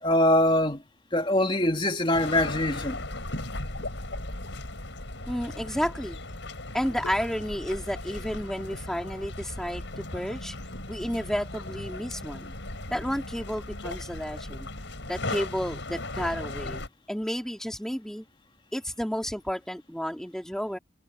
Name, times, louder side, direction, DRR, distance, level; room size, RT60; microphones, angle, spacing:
voice 1, 0.0-0.8 1.1-3.0, left 1 dB, 25° left, 2.3 m, -23 dB
sound 1, 2.1-16.9, left 2 dB, 70° left, 5.8 m, -37 dB
voice 2, 5.3-6.2 6.7-10.5 10.9-12.5 12.9-14.7 15.1-18.2 18.7-20.8, equal, 5° left, 2.4 m, -31 dB
head